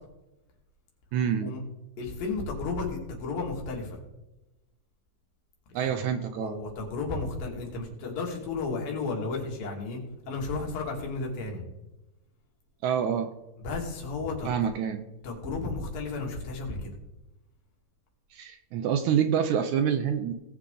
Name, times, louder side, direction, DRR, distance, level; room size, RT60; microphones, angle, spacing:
voice 1, 1.1-1.5 5.7-6.5 12.8-13.3 14.5-15.0 18.3-20.3, right 8 dB, 80° right, 8 dB, 1.7 m, -27 dB
voice 2, 2.0-4.0 5.8-10.0 10.3-11.6 13.6-14.7 15.2-16.9, left 3 dB, 80° left, 0 dB, 4.0 m, -33 dB
18.5 x 7.2 x 3.8 m, 0.97 s
omnidirectional pair, 4.0 m